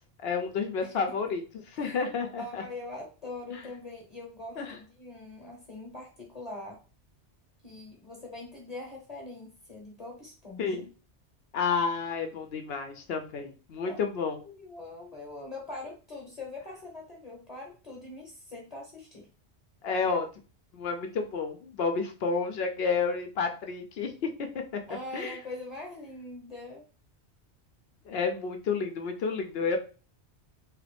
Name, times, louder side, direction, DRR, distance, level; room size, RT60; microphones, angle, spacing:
voice 1, 0.2-1.4 1.8-2.6 3.5-3.6 4.6-4.8 10.6-10.9 11.5-14.4 19.8-20.3 20.7-24.3 24.7-24.8 25.1-25.4 28.1-29.8, left 5 dB, 65° left, 5 dB, 0.8 m, -30 dB
voice 2, 1.7-2.1 2.4-6.8 7.6-10.9 13.8-14.1 14.4-19.3 24.9-26.8, left 2 dB, 35° left, -2 dB, 0.9 m, -42 dB
3.2 x 2.5 x 3.3 m, 0.35 s
omnidirectional pair, 1.2 m